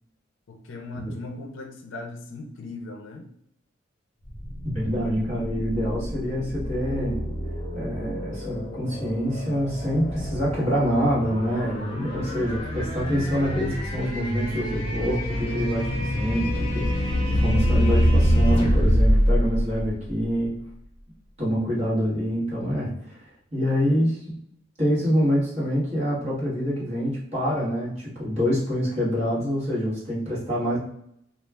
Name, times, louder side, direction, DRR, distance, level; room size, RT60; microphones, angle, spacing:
voice 1, 0.5-3.3 12.1-12.5, left 2 dB, 70° left, 3 dB, 0.5 m, -38 dB
sound 1, 4.2-20.5, equal, 30° left, 0.9 m, -26 dB
voice 2, 4.7-7.2 7.7-20.5 21.4-24.3 24.8-30.8, equal, 35° right, -7 dB, 1.1 m, -26 dB
2.3 x 2.3 x 3.2 m, 0.74 s
head